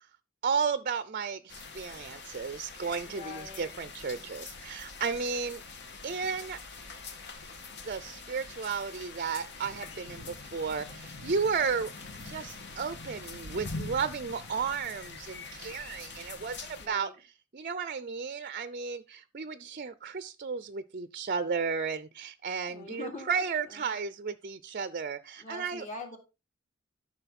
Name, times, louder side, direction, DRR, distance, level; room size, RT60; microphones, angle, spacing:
voice 1, 0.4-5.6 6.0-6.6 7.8-11.9 12.2-25.8, right 5 dB, 40° right, 0.6 m, -33 dB
sound 1, 1.5-16.9, left 3 dB, 55° left, 2.2 m, -44 dB
voice 2, 3.1-3.7 16.8-17.1 22.7-23.4 23.6-23.9 25.4-26.2, left 3 dB, 35° left, 3.5 m, -43 dB
13.0 x 6.4 x 4.2 m
head